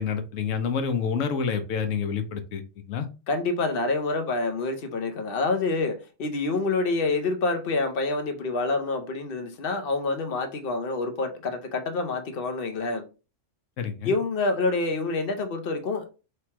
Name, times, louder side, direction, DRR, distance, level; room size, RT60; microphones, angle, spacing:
voice 1, 0.0-2.6 2.9-3.1 13.8-14.1, left 6 dB, 85° left, 1.1 m, -28 dB
voice 2, 3.3-13.1 14.0-16.1, left 3 dB, 55° left, 0.9 m, -27 dB
3.2 x 2.9 x 4.5 m
omnidirectional pair, 1.3 m